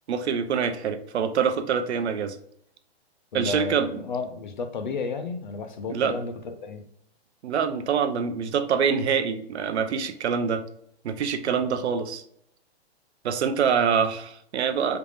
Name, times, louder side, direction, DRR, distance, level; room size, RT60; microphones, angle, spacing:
voice 1, 0.1-2.4 3.3-4.0 5.9-6.2 7.4-10.6 11.0-12.2 13.2-15.0, right 6 dB, 80° right, 9 dB, 0.6 m, -25 dB
voice 2, 3.3-6.8 11.7-11.8, left 4 dB, 45° left, 6 dB, 0.5 m, -32 dB
3.4 x 2.4 x 3.2 m, 0.72 s
hypercardioid pair, 180°, 33 cm